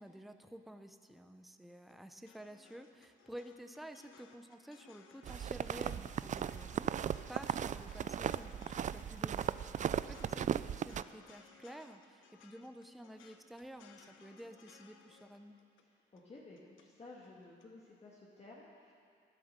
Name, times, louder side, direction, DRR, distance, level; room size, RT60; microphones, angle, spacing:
voice 1, 0.0-6.9 7.3-15.6, equal, ahead, 7 dB, 0.7 m, -51 dB
sound 1, 1.7-16.9 17.2-17.6, left 6 dB, 80° left, 1.0 m, -62 dB
sound 2, 5.2-11.0, right 9 dB, 40° right, 0.4 m, -37 dB
voice 2, 15.8-18.9, left 2 dB, 30° left, -4 dB, 1.9 m, -55 dB
12.0 x 10.5 x 6.7 m, 2.3 s
cardioid pair, 90°, 20 cm